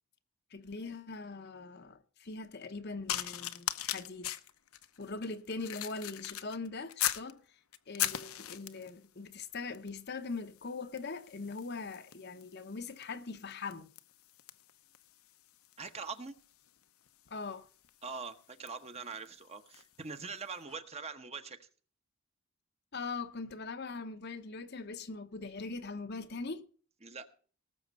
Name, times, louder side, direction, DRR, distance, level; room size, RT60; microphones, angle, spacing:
voice 1, 0.5-4.3 5.0-7.4 7.9-13.9 17.3-17.7 22.9-26.6, left 4 dB, 45° left, 0.8 m, -41 dB
sound 1, 3.1-7.3 7.7-9.0 9.7-10.0 10.3-20.0 20.7-20.8, left 12 dB, 75° left, 0.9 m, -40 dB
voice 2, 15.8-16.3 18.0-21.7 27.0-27.4, right 4 dB, 30° right, 1.0 m, -43 dB
18.5 x 7.2 x 5.3 m
head